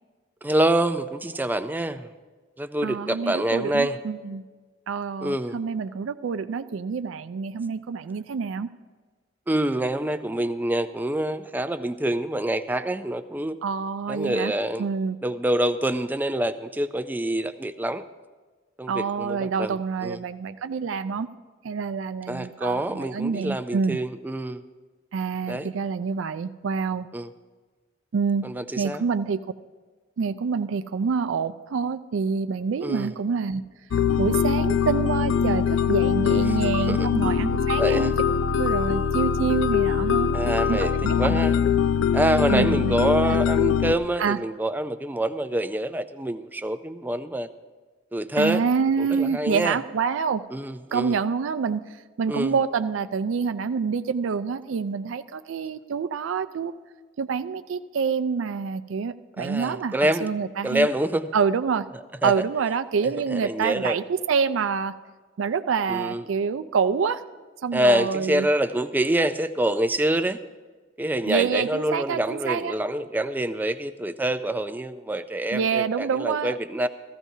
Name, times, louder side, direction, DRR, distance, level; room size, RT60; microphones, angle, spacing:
voice 1, 0.4-2.1 2.6-4.0 5.2-5.6 9.5-13.6 14.1-14.8 15.2-18.0 18.8-19.8 20.0-20.2 22.3-24.6 25.5-25.7 27.1-27.3 28.4-29.0 32.8-33.1 36.3-37.1 37.8-38.1 40.3-40.9 41.2-41.6 42.1-47.5 48.1-48.6 49.0-49.8 50.5-51.2 52.3-52.5 59.4-60.3 60.6-61.3 62.2-62.3 63.3-64.0 65.9-66.2 67.7-70.4 71.0-76.9, right 1 dB, 10° right, 10 dB, 0.4 m, -26 dB
voice 2, 2.8-4.4 4.9-8.7 13.6-14.5 14.8-15.2 18.9-21.3 21.6-24.0 25.1-27.1 28.1-28.5 28.8-29.4 30.2-33.6 34.2-38.1 38.5-40.3 40.7-41.4 42.5-42.9 43.3-43.4 44.2-44.4 48.4-50.5 50.9-51.8 52.2-56.7 57.2-60.9 61.3-61.9 62.2-64.9 65.4-67.2 67.6-68.5 71.3-72.8 75.5-76.6, right 5 dB, 80° right, 11 dB, 0.4 m, -27 dB
sound 1, 33.9-44.0, left 7 dB, 80° left, 0.4 m, -22 dB
15.5 x 14.5 x 2.7 m, 1.4 s
head